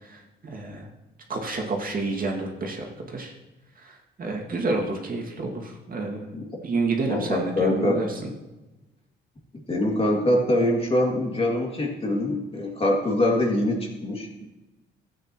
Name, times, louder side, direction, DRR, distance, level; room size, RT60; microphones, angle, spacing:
voice 1, 0.0-0.9 1.3-3.3 3.8-6.3 6.6-8.1 14.4-14.5, right 3 dB, 45° right, 0 dB, 2.2 m, -29 dB
voice 2, 7.1-8.0 9.7-14.5, left 1 dB, 30° left, 0 dB, 2.4 m, -24 dB
13.5 x 8.8 x 3.0 m, 1.1 s
cardioid pair, 90°, 20 cm